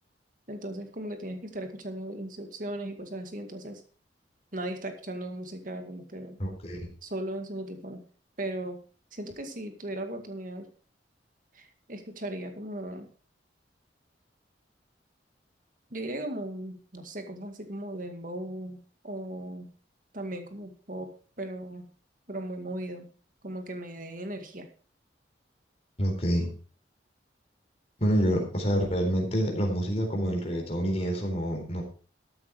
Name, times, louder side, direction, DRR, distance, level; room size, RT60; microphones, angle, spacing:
voice 1, 0.5-3.8 4.5-6.4 7.0-8.0 8.4-8.8 9.1-10.7 11.5-13.1 15.9-18.8 19.0-19.7 20.1-21.1 21.4-21.8 22.3-23.1 23.4-24.7, right 1 dB, 45° right, 6 dB, 2.1 m, -37 dB
voice 2, 6.4-6.8 26.0-26.5 28.0-31.8, equal, 35° left, 2 dB, 3.9 m, -27 dB
13.5 x 8.8 x 4.8 m, 0.40 s
head